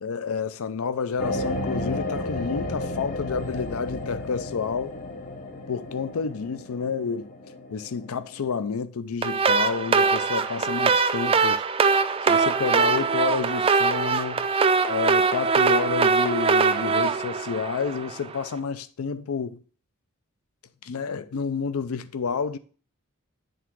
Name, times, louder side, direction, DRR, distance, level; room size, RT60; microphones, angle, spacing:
voice 1, 0.0-5.0 5.7-7.3 7.7-11.6 12.3-14.5 14.9-19.6 20.8-22.6, left 5 dB, 80° left, 0.5 m, -29 dB
sound 1, 1.2-8.6, left 1 dB, 40° left, 0.7 m, -33 dB
sound 2, 9.2-18.3, right 5 dB, 25° right, 0.3 m, -22 dB
8.0 x 3.6 x 4.5 m
head